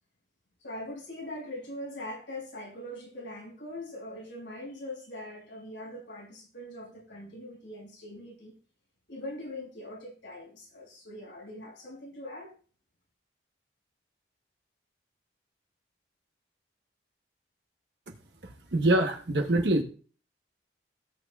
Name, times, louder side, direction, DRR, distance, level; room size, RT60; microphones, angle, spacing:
voice 1, 0.6-8.5 9.1-12.5, left 1 dB, 80° left, 0 dB, 6.0 m, -42 dB
voice 2, 18.4-19.8, right 1 dB, 65° right, 3 dB, 1.1 m, -25 dB
17.0 x 8.8 x 2.4 m, 0.39 s
head